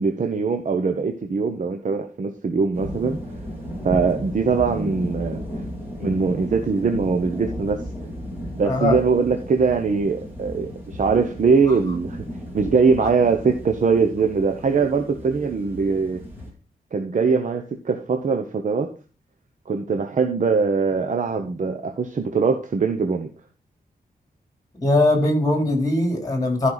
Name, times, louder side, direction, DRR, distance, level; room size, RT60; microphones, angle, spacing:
voice 1, 0.0-3.2 3.8-5.4 6.0-7.8 8.6-12.2 12.5-16.2 16.9-18.9 19.7-23.3, right 5 dB, 55° right, 5 dB, 1.0 m, -22 dB
sound 1, 2.7-16.5, equal, 15° right, 4.3 m, -34 dB
voice 2, 8.6-9.0 13.0-13.1 24.8-26.7, left 2 dB, 25° left, 2 dB, 3.7 m, -20 dB
13.5 x 5.7 x 4.1 m, 0.33 s
wide cardioid pair, 135°, 16 cm